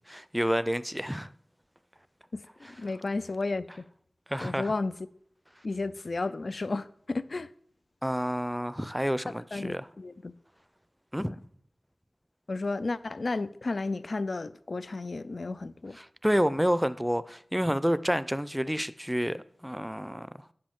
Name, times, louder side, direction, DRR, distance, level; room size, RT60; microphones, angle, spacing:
voice 1, 0.1-1.3 2.6-2.7 4.3-4.7 8.0-9.9 11.1-11.3 15.9-20.3, equal, 5° right, 0.5 m, -29 dB
voice 2, 2.8-3.7 4.4-4.9 5.6-7.5 9.5-10.3 11.2-11.3 12.5-16.0, left 3 dB, 65° left, 0.4 m, -32 dB
10.5 x 7.6 x 3.6 m
wide cardioid pair, 50°, 0 cm